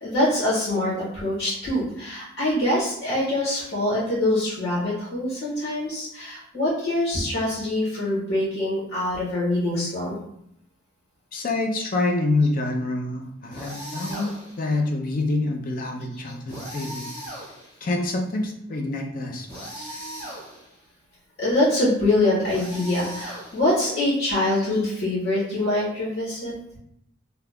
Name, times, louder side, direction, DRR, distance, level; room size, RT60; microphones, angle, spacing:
voice 1, 0.0-10.1 19.5-19.9 21.4-26.5, left 1 dB, 85° left, -8 dB, 1.3 m, -24 dB
voice 2, 11.3-14.3 14.6-17.0 17.8-20.0, left 2 dB, 45° left, 2 dB, 0.4 m, -26 dB
sound 1, 13.5-14.7 16.5-17.9 19.5-20.8 22.4-23.9, equal, 20° left, 0.8 m, -38 dB
2.8 x 2.3 x 3.5 m, 0.76 s
head